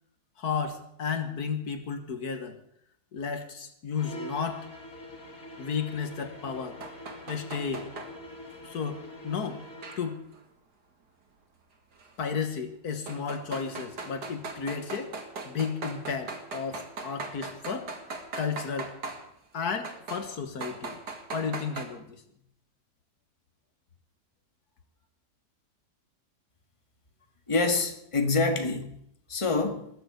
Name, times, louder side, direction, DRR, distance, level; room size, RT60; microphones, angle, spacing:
voice 1, 0.4-2.6 3.1-4.7 5.6-6.8 7.3-7.9 8.6-9.6 10.0-10.2 12.2-15.1 15.5-17.9 18.3-18.9 19.5-21.0 21.3-22.2, left 6 dB, 75° left, 7 dB, 1.9 m, -33 dB
sound 1, 3.9-10.1, left 1 dB, 55° left, 3.4 m, -44 dB
sound 2, 6.8-8.1 9.8-10.4 12.0-12.1 13.1-19.2 19.8-20.3 20.6-21.9, right 3 dB, 85° right, 2.6 m, -39 dB
voice 2, 27.5-29.0 29.3-29.9, left 3 dB, 20° left, 5 dB, 1.7 m, -26 dB
21.0 x 7.8 x 8.0 m, 0.73 s
omnidirectional pair, 1.7 m